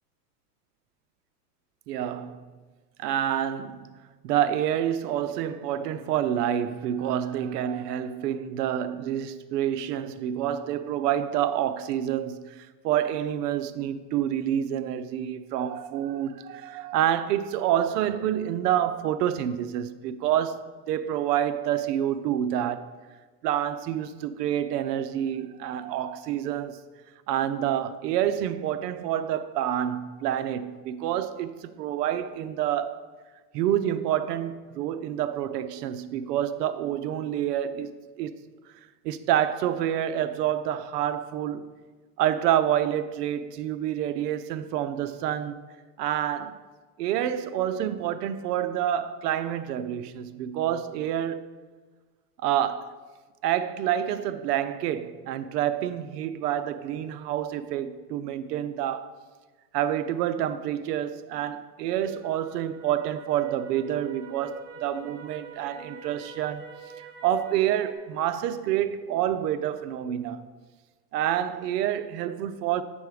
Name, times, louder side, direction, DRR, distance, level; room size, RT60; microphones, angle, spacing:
voice 1, 1.9-2.4 3.0-3.9 4.2-22.9 23.4-26.8 27.3-33.0 33.5-38.4 39.0-41.7 42.2-45.6 46.0-46.6 47.0-51.5 52.4-52.9 53.4-59.1 59.7-66.7 67.2-70.4 71.1-72.8, right 11 dB, 80° right, 0.7 m, -28 dB
sound 1, 62.0-67.9, right 4 dB, 25° right, 0.5 m, -46 dB
8.5 x 5.4 x 4.7 m
supercardioid pair, 135°, 48 cm